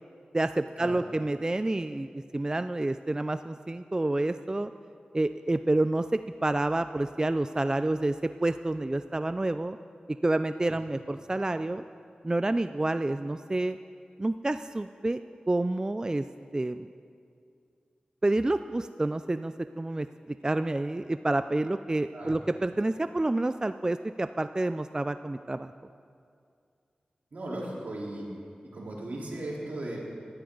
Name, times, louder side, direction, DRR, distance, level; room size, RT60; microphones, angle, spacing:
voice 1, 0.3-4.7 5.1-9.8 10.1-11.8 12.2-13.8 14.2-15.2 15.5-16.2 16.5-16.9 18.2-25.7, right 2 dB, 25° right, 10 dB, 0.4 m, -29 dB
voice 2, 27.3-28.3 28.7-30.0, right 1 dB, 75° right, -4 dB, 3.7 m, -37 dB
19.0 x 13.5 x 3.9 m, 2.4 s
cardioid pair, 45°, 3 cm